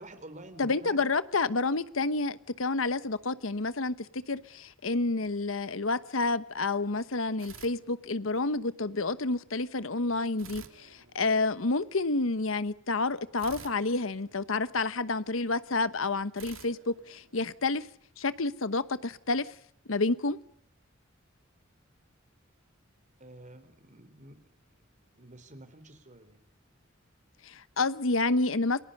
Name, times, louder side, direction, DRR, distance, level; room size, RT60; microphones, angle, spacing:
voice 1, 0.0-1.0 23.2-24.4 25.1-26.4, right 1 dB, 40° right, 3.9 m, -49 dB
voice 2, 0.6-17.9 18.2-19.5 19.9-20.4 27.4-28.8, left 3 dB, 85° left, 1.1 m, -29 dB
sound 1, 7.4-8.5 10.4-11.8 13.4-15.1 16.4-17.9, right 6 dB, 90° right, 2.7 m, -51 dB
29.5 x 21.5 x 5.4 m
head